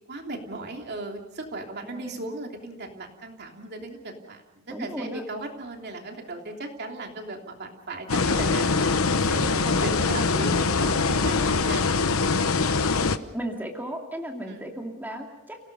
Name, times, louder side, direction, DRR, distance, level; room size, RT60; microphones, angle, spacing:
voice 1, 0.1-9.0 9.3-11.8 14.5-14.7, right 2 dB, 50° right, 2 dB, 3.1 m, -37 dB
voice 2, 1.8-2.3 4.7-5.2 12.7-13.0 13.3-15.7, right 1 dB, 10° right, 1 dB, 2.4 m, -35 dB
sound 1, 8.1-13.2, left 4 dB, 90° left, 1.0 m, -23 dB
30.0 x 18.0 x 5.4 m, 0.91 s
head